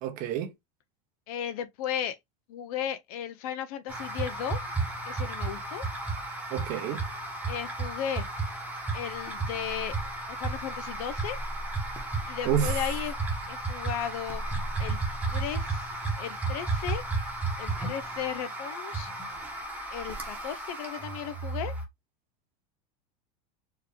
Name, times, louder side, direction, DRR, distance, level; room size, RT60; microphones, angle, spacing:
voice 1, 0.0-0.5 6.5-7.0 12.4-12.9, right 10 dB, 40° right, 1.0 m, -29 dB
voice 2, 1.3-2.2 2.5-4.6 5.0-5.8 7.5-8.3 8.9-10.0 10.3-11.4 12.3-13.2 13.5-14.4 14.8-15.0 15.3-17.0 17.6-19.1 19.9-21.7, left 9 dB, 65° left, 0.9 m, -35 dB
sound 1, 3.9-21.9, right 3 dB, 5° right, 1.2 m, -33 dB
4.7 x 3.0 x 3.5 m
supercardioid pair, 155°, 21 cm